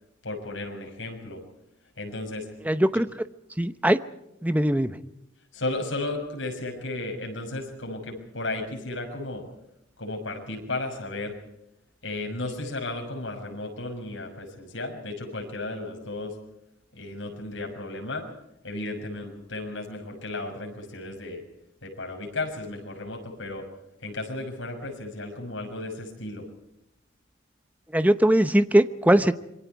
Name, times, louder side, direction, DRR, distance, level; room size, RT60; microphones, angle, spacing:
voice 1, 0.2-1.4 2.0-2.5 5.5-9.4 10.0-11.4 12.0-16.3 16.9-18.3 18.6-21.4 21.8-23.7 24.0-26.4, left 2 dB, 75° left, 2 dB, 6.5 m, -34 dB
voice 2, 2.7-3.1 3.6-4.0 4.4-5.0 27.9-29.3, right 1 dB, 10° right, 12 dB, 0.8 m, -20 dB
26.5 x 23.0 x 4.7 m, 0.84 s
head